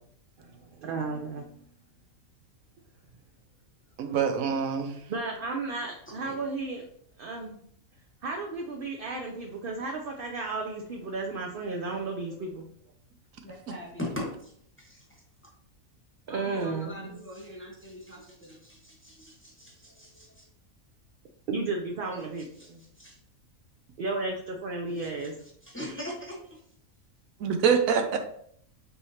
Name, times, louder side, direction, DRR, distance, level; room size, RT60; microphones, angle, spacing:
voice 1, 0.4-1.7 5.1-6.9 7.2-7.6 8.2-12.7 16.3-17.2 21.5-22.8 24.0-25.4, right 3 dB, 60° right, 1 dB, 0.6 m, -33 dB
voice 2, 4.0-5.0 27.4-28.2, right 6 dB, 75° right, 6 dB, 1.0 m, -25 dB
voice 3, 13.4-15.2 16.3-20.4 22.1-22.2 22.6-22.7 23.0-23.2 24.9-25.1 25.6-26.6, left 1 dB, 10° left, -3 dB, 1.0 m, -41 dB
5.5 x 3.2 x 2.8 m, 0.65 s
omnidirectional pair, 1.5 m